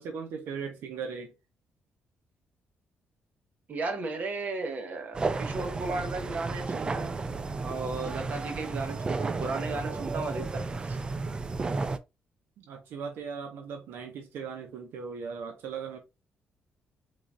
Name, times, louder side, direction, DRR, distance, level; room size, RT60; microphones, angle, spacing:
voice 1, 0.0-1.3 12.6-16.0, right 6 dB, 80° right, 0.9 m, -38 dB
voice 2, 3.7-7.2 7.6-11.0, right 3 dB, 45° right, 1.1 m, -35 dB
sound 1, 5.1-12.0, right 3 dB, 25° right, 0.4 m, -33 dB
4.0 x 3.8 x 2.4 m
cardioid pair, 125°, 4 cm